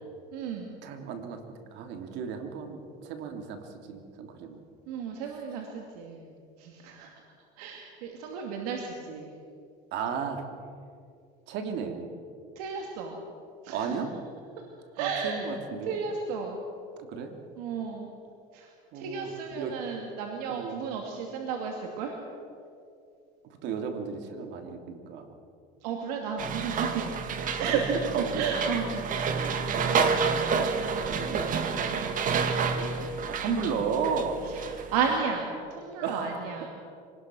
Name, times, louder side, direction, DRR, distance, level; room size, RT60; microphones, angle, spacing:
voice 1, 0.3-0.7 4.9-6.3 6.6-7.1 7.6-9.3 12.6-13.2 13.6-14.0 14.9-15.5 15.9-16.6 17.6-18.1 18.5-22.2 25.8-30.2 31.8-32.0 34.5-36.7, right 6 dB, 90° right, 1 dB, 2.6 m, -33 dB
voice 2, 0.8-1.4 1.7-4.6 9.9-10.5 11.5-12.1 13.7-14.1 15.0-16.0 17.0-17.3 18.9-19.3 19.5-19.7 20.5-20.8 23.6-25.3 27.6-27.8 28.1-28.6 31.1-31.8 32.7-34.4 36.0-36.3, right 6 dB, 65° right, 5 dB, 3.1 m, -34 dB
sound 1, 26.4-35.2, right 5 dB, 45° right, 2.1 m, -29 dB
25.5 x 19.5 x 6.3 m, 2.5 s
supercardioid pair, 115°, 19 cm